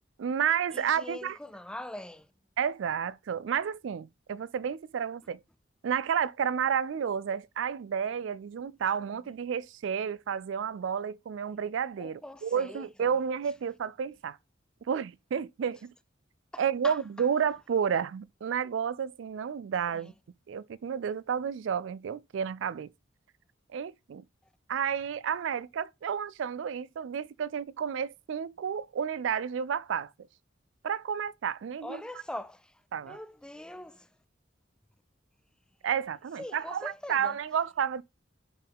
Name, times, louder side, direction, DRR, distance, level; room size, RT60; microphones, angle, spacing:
voice 1, 0.2-1.4 2.6-5.4 5.8-14.4 14.9-15.9 16.6-20.1 20.5-22.9 23.7-24.2 24.7-30.1 30.8-32.0 32.9-33.2 35.8-38.0, right 7 dB, 70° right, 0.3 m, -31 dB
voice 2, 0.7-2.3 12.0-13.1 16.5-17.0 19.9-20.1 31.8-32.7 33.0-34.1 36.4-37.4, left 1 dB, 5° left, 0.3 m, -42 dB
10.5 x 4.6 x 3.5 m
head